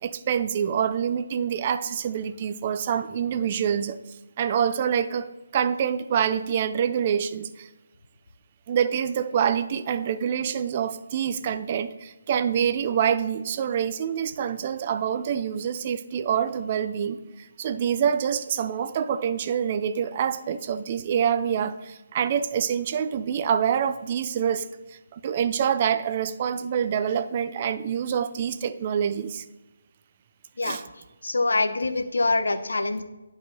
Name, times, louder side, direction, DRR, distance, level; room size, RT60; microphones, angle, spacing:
voice 1, 0.0-4.0 4.4-7.7 8.7-24.7 24.9-29.4 30.6-30.8, right 8 dB, 30° right, 12 dB, 0.4 m, -26 dB
voice 2, 31.2-33.0, left 3 dB, 65° left, 9 dB, 0.7 m, -24 dB
10.0 x 4.8 x 3.9 m, 1.1 s
figure-of-eight pair, 150°, 0 cm